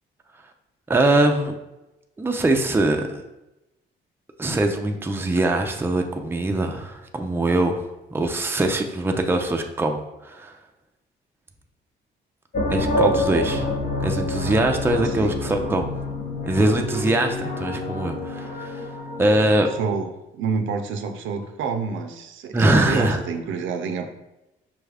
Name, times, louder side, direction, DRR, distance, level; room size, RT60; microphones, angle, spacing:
voice 1, 0.9-1.5 2.2-3.2 4.4-10.5 12.7-13.7 14.0-15.9 16.5-18.8 19.2-19.7 22.5-23.2, right 2 dB, 10° right, 4 dB, 0.4 m, -22 dB
sound 1, 12.5-19.9, left 1 dB, 50° left, 0.9 m, -27 dB
voice 2, 15.0-15.4 19.8-24.1, right 5 dB, 80° right, 6 dB, 0.5 m, -28 dB
5.3 x 2.3 x 3.3 m, 0.95 s
cardioid pair, 90°, 20 cm